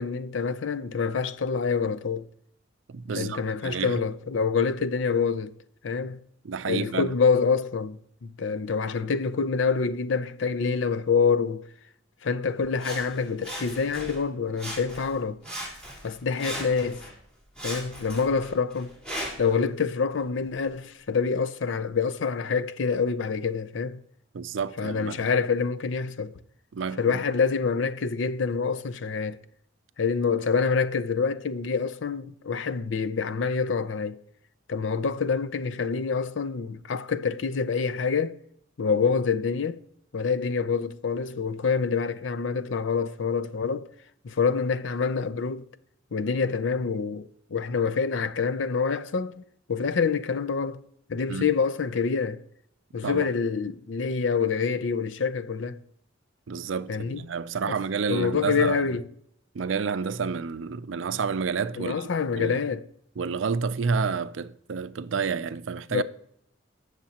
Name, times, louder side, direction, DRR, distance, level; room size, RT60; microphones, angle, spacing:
voice 1, 0.0-2.3 3.1-5.5 5.8-6.2 6.6-11.7 12.2-15.4 16.0-17.1 17.6-19.0 19.4-24.0 24.8-26.3 27.0-29.4 30.0-34.2 34.7-38.4 38.8-39.8 40.1-43.9 44.2-45.7 46.1-50.8 51.1-52.4 52.9-55.8 56.9-57.2 57.7-57.8 58.1-59.1 61.8-62.9 65.9-66.0, left 5 dB, 70° left, 0.6 m, -26 dB
voice 2, 2.9-4.0 6.4-7.1 24.3-25.2 26.7-27.0 51.3-51.5 53.0-53.3 56.5-58.8 59.5-62.6 63.2-66.0, right 5 dB, 75° right, 0.5 m, -30 dB
Sawing, 12.8-14.3 14.6-15.2 15.4-17.1 17.6-19.6 20.2-20.3, equal, 5° left, 3.7 m, -38 dB
18.5 x 6.7 x 2.9 m
head